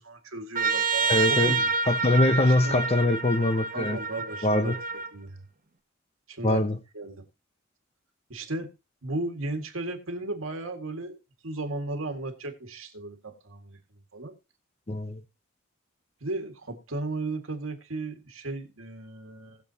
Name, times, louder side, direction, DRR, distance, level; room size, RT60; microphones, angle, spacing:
voice 1, 0.0-1.7 2.5-3.2 3.7-4.8 5.1-5.4 6.3-6.6 6.9-7.2 8.3-8.7 9.0-11.2 11.4-13.8 14.1-14.3 16.2-19.6, right 2 dB, 80° right, 2.0 m, -35 dB
Trumpet, 0.5-5.1, right 4 dB, 45° right, 1.1 m, -28 dB
voice 2, 1.1-1.6 1.9-4.0 4.4-4.8 6.4-6.8 14.9-15.2, left 2 dB, 30° left, 0.7 m, -23 dB
19.5 x 7.0 x 2.9 m
head